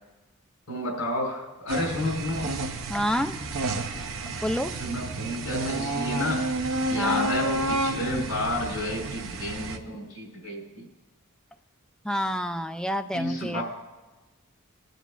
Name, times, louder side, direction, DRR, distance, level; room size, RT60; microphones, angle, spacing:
voice 1, 0.7-2.5 4.7-6.5 6.9-10.9 13.1-13.6, left 1 dB, 80° left, 0 dB, 4.4 m, -31 dB
sound 1, 1.7-9.8, right 2 dB, 65° right, 0.7 m, -30 dB
voice 2, 2.9-3.4 4.4-4.7 7.0-7.3 12.0-13.6, equal, 5° left, 7 dB, 0.3 m, -28 dB
19.5 x 9.2 x 2.5 m, 1.1 s
head